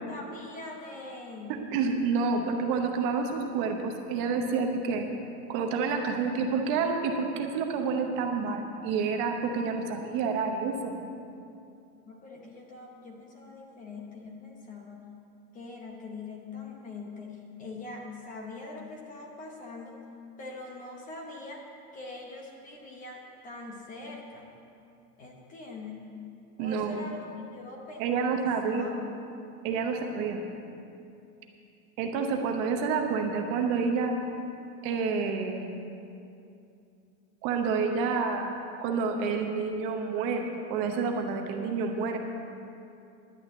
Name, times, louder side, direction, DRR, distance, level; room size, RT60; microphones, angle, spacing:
voice 1, 0.0-1.7 12.0-15.1 15.5-20.0 20.4-24.5 25.2-26.1 26.6-28.0 28.4-29.2, left 3 dB, 15° left, 0 dB, 0.8 m, -43 dB
voice 2, 1.5-5.1 5.5-11.0 26.6-27.0 28.0-29.0 29.6-30.4 32.0-34.1 34.8-35.7 37.4-42.2, right 5 dB, 35° right, 3 dB, 0.9 m, -29 dB
11.0 x 6.3 x 9.0 m, 2.6 s
supercardioid pair, 165°, 45 cm